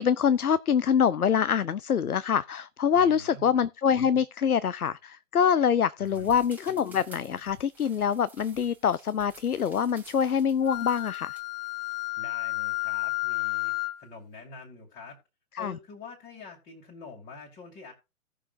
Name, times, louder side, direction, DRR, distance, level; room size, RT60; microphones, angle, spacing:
voice 1, 0.0-11.4 15.6-15.8, left 7 dB, 85° left, 0.6 m, -25 dB
voice 2, 2.9-3.5 6.0-6.4 12.2-15.2 15.6-17.9, left 3 dB, 15° left, 2.2 m, -46 dB
sound 1, 6.0-11.4, right 3 dB, 5° right, 1.5 m, -53 dB
Wind instrument woodwind instrument, 10.7-14.0, left 22 dB, 40° left, 2.0 m, -31 dB
17.5 x 6.4 x 2.5 m
figure-of-eight pair, 125°, 43 cm